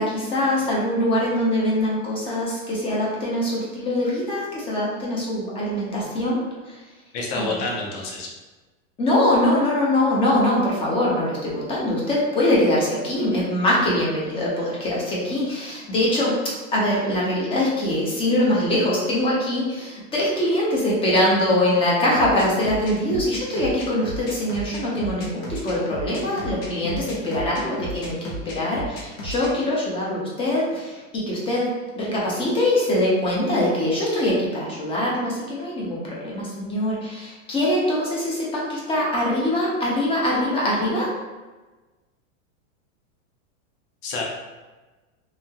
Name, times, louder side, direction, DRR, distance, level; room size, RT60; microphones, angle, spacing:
voice 1, 0.0-6.8 7.3-7.6 9.0-41.1, left 1 dB, 15° left, -5 dB, 0.5 m, -23 dB
voice 2, 7.1-8.3 44.0-44.2, left 3 dB, 45° left, -1 dB, 0.8 m, -28 dB
sound 1, 22.2-29.5, right 1 dB, 80° left, 1.1 m, -33 dB
3.1 x 2.7 x 2.2 m, 1.2 s
supercardioid pair, 140°, 40 cm